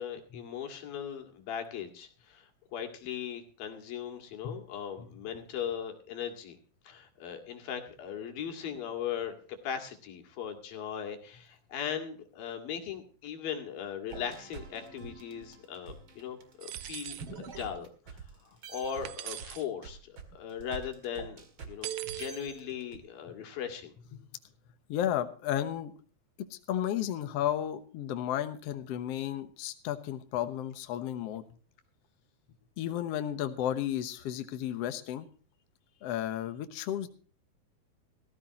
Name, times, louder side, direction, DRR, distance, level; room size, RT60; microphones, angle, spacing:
voice 1, 0.0-6.6 6.9-9.3 9.6-17.9 18.4-21.4 21.7-21.9 22.2-23.9, left 8 dB, 85° left, 5 dB, 3.9 m, -38 dB
sound 1, 14.1-18.3 18.6-23.0, right 6 dB, 40° right, 2.4 m, -45 dB
sound 2, 16.6-17.3 19.0-19.7 21.8-22.3, right 13 dB, 75° right, 1.9 m, -41 dB
voice 2, 24.9-25.9 26.5-31.4 32.8-35.3 36.0-37.1, left 11 dB, 65° left, 9 dB, 1.7 m, -33 dB
18.0 x 14.5 x 2.9 m, 0.41 s
omnidirectional pair, 4.0 m